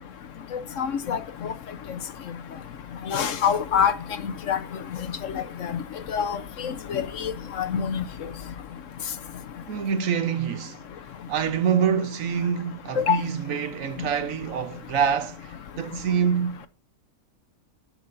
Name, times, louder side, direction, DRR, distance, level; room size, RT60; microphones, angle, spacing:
voice 1, 0.5-1.5 3.1-3.9 4.5-4.6 5.2-5.8 6.1-7.3 7.6-8.0 13.0-13.2, left 8 dB, 60° left, 1.0 m, -25 dB
voice 2, 9.7-10.8 11.3-16.7, right 7 dB, 65° right, 1.2 m, -26 dB
14.0 x 6.3 x 2.6 m
omnidirectional pair, 1.6 m